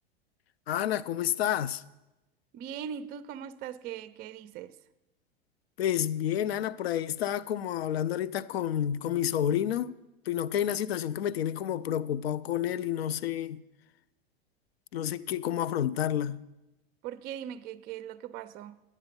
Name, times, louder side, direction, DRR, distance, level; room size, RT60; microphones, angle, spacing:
voice 1, 0.7-1.8 5.8-10.0 10.3-13.6 14.9-16.4, left 10 dB, 75° left, 0.5 m, -29 dB
voice 2, 2.5-4.8 17.0-18.8, right 9 dB, 30° right, 0.4 m, -40 dB
10.5 x 8.3 x 5.2 m
hypercardioid pair, 90°, 31 cm